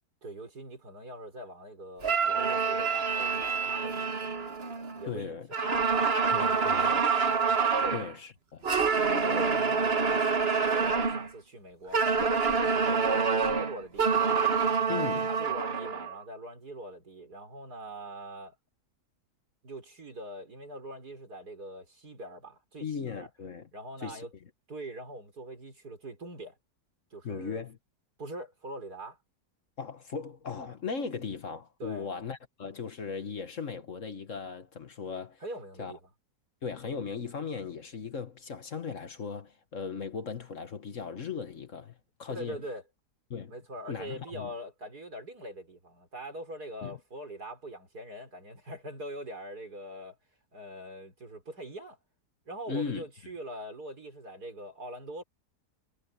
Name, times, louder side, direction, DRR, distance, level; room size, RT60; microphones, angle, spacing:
voice 1, 0.2-4.6 4.9-7.3 7.8-8.0 9.2-14.1 14.8-18.6 19.6-23.3 23.7-24.3 24.7-26.6 27.1-27.6 28.2-29.2 31.8-32.1 35.4-36.1 42.3-42.8 43.5-50.2 50.5-52.0 52.5-55.2, right 1 dB, 75° right, 6.0 m, -43 dB
sound 1, 2.0-5.1 5.5-8.1 8.6-11.3 11.9-16.1, right 5 dB, 40° right, 1.7 m, -27 dB
voice 2, 5.0-5.5 6.3-7.0 7.9-8.6 14.9-15.3 22.8-23.7 24.0-24.2 27.2-27.8 29.8-35.4 35.8-35.9 36.6-42.6 43.3-43.5 43.9-44.5 46.8-47.0 52.7-53.0, left 6 dB, 55° left, 1.7 m, -37 dB
omnidirectional pair, 1.7 m